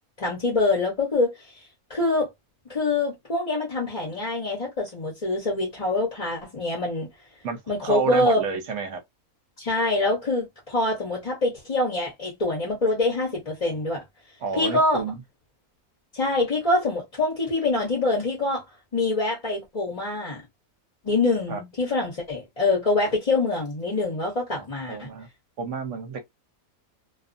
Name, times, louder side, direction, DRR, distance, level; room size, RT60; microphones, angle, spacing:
voice 1, 0.2-1.3 1.9-2.3 2.7-7.1 7.7-8.4 9.6-14.0 14.5-15.0 16.1-18.6 18.9-20.4 21.0-25.1, left 2 dB, 30° left, 0.7 m, -25 dB
voice 2, 7.4-9.0 14.4-15.2 21.5-21.6 24.6-25.3 25.6-26.2, right 5 dB, 60° right, 0.9 m, -30 dB
2.4 x 2.4 x 2.5 m
omnidirectional pair, 1.5 m